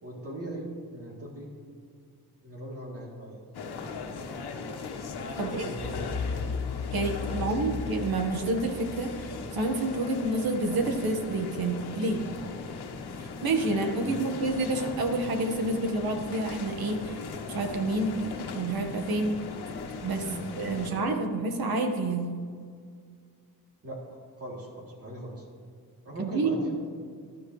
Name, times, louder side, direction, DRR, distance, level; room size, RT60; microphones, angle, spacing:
voice 1, 0.0-1.5 2.4-3.5 5.3-6.4 7.4-7.6 13.9-14.4 20.2-21.0 23.8-24.0 24.4-25.4 26.0-26.9, right 1 dB, 35° right, -3 dB, 3.4 m, -40 dB
sound 1, 3.5-20.9, left 4 dB, 75° left, 1.5 m, -38 dB
voice 2, 5.4-5.7 6.9-9.1 9.5-12.2 13.2-17.1 17.5-18.2 18.5-19.4 20.0-20.2 20.6-22.3 26.2-26.7, right 2 dB, 65° right, 4 dB, 1.7 m, -28 dB
sound 2, 5.8-10.6, left 5 dB, 60° left, 1.8 m, -36 dB
19.5 x 12.0 x 3.3 m, 2.1 s
cardioid pair, 115°, 39 cm